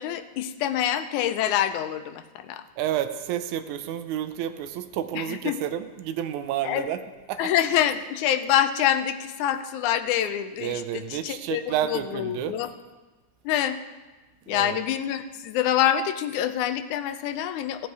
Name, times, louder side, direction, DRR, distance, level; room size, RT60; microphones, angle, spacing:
voice 1, 0.0-2.6 5.1-5.6 6.6-6.9 7.4-12.7 13.5-13.8 14.5-17.9, left 10 dB, 85° left, 10 dB, 2.1 m, -26 dB
voice 2, 2.8-7.0 7.3-7.4 10.6-12.6 14.5-14.8, right 11 dB, 85° right, 10 dB, 2.1 m, -30 dB
16.0 x 8.7 x 4.7 m, 1.2 s
omnidirectional pair, 3.4 m